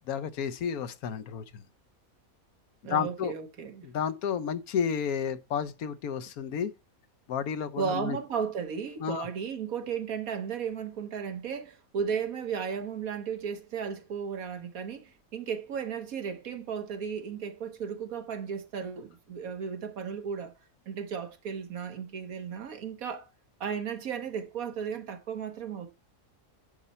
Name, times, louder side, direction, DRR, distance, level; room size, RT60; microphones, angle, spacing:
voice 1, 0.1-1.6 2.9-3.3 3.8-6.7 7.3-8.2 9.0-9.3, left 7 dB, 90° left, 1.3 m, -31 dB
voice 2, 2.8-3.9 7.8-20.5 20.9-23.3 23.6-25.9, right 7 dB, 75° right, 1.6 m, -35 dB
9.9 x 5.6 x 4.2 m
omnidirectional pair, 1.5 m